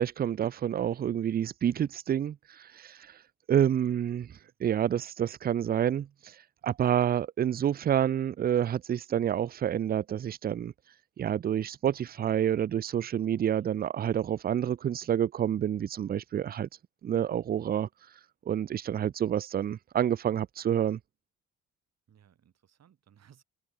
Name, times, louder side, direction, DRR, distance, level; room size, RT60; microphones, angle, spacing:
voice 1, 0.0-3.2 3.5-4.3 4.6-6.4 6.6-10.7 11.2-16.7 17.0-17.9 18.5-21.0, right 9 dB, 30° right, 0.4 m, -28 dB
voice 2, 3.8-4.6 6.6-6.7 13.6-13.9 22.1-23.4, right 9 dB, 60° right, 5.2 m, -62 dB
cardioid pair, 90°, 30 cm